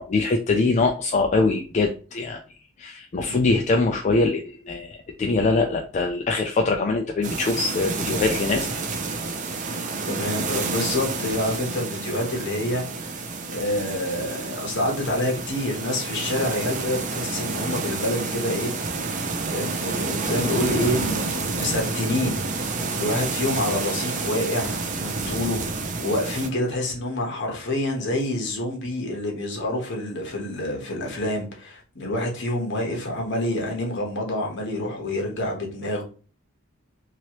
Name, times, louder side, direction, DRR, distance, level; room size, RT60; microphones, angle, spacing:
voice 1, 0.0-2.4 2.8-8.7, left 3 dB, 35° left, 0.3 m, -23 dB
sound 1, 7.2-26.5, right 3 dB, 40° right, 0.5 m, -29 dB
voice 2, 10.0-13.2 13.5-19.0 19.5-36.0, left 1 dB, 60° left, 1.1 m, -27 dB
3.0 x 2.8 x 2.9 m
head